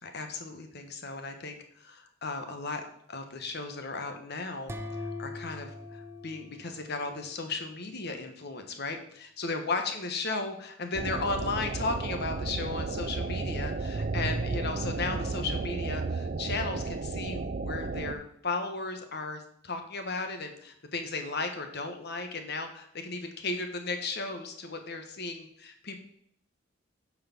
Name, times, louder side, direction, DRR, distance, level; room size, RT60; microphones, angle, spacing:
voice 1, 0.0-2.8 3.1-26.0, left 3 dB, 55° left, 6 dB, 1.3 m, -35 dB
sound 1, 4.7-7.4, left 2 dB, 15° right, 0.7 m, -41 dB
sound 2, 10.9-18.1, right 3 dB, 45° right, 0.5 m, -33 dB
9.1 x 4.8 x 6.0 m, 0.65 s
head